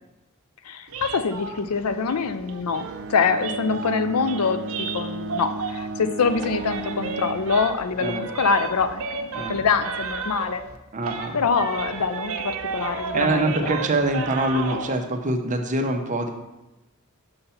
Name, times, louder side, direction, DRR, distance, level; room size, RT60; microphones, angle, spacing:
voice 1, 0.6-10.6 11.3-13.7, left 5 dB, 85° left, 11 dB, 0.5 m, -25 dB
sound 1, 0.9-6.0 6.3-10.8 11.0-14.9, right 4 dB, 70° right, 0.7 m, -33 dB
Bowed string instrument, 2.7-7.6, right 2 dB, 55° right, 0.3 m, -34 dB
voice 2, 10.9-11.4 13.1-16.3, right 2 dB, 35° right, 5 dB, 0.8 m, -24 dB
5.6 x 5.5 x 5.7 m, 1.0 s
head